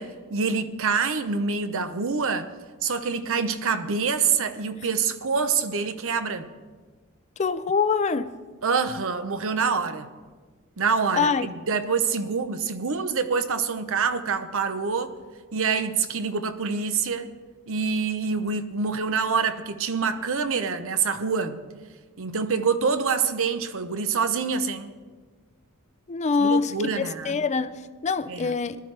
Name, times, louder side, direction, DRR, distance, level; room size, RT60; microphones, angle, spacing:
voice 1, 0.0-2.5 2.8-6.5 8.6-10.1 10.8-15.1 15.5-17.3 17.7-21.6 22.2-24.9 26.4-27.4 28.3-28.5, right 5 dB, 65° right, 0.8 m, -26 dB
voice 2, 7.4-8.3 11.1-11.5 26.1-28.8, left 5 dB, 30° left, 0.4 m, -24 dB
19.5 x 12.0 x 3.3 m
head